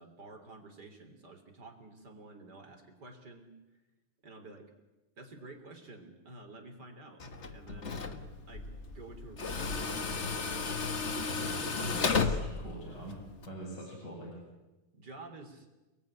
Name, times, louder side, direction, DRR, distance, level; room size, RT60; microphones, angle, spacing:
voice 1, 0.0-3.5 4.2-4.7 5.2-8.7 8.9-10.0 14.9-15.7, right 2 dB, 30° right, 5 dB, 3.6 m, -50 dB
Tools, 7.2-13.5, left 4 dB, 45° left, 0.8 m, -34 dB
voice 2, 11.8-13.2 13.5-14.3, right 1 dB, 30° left, -2 dB, 7.2 m, -44 dB
30.0 x 19.5 x 9.8 m, 1.1 s
omnidirectional pair, 3.6 m